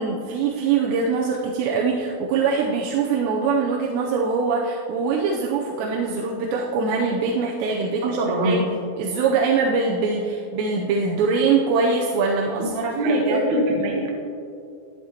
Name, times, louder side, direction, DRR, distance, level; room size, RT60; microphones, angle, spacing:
voice 1, 0.0-8.6 9.0-13.4, right 4 dB, 80° right, -1 dB, 2.8 m, -23 dB
voice 2, 8.0-8.6 12.6-12.7 12.9-14.1, right 1 dB, 65° right, -1 dB, 1.9 m, -23 dB
13.0 x 11.0 x 3.0 m, 2.4 s
omnidirectional pair, 5.2 m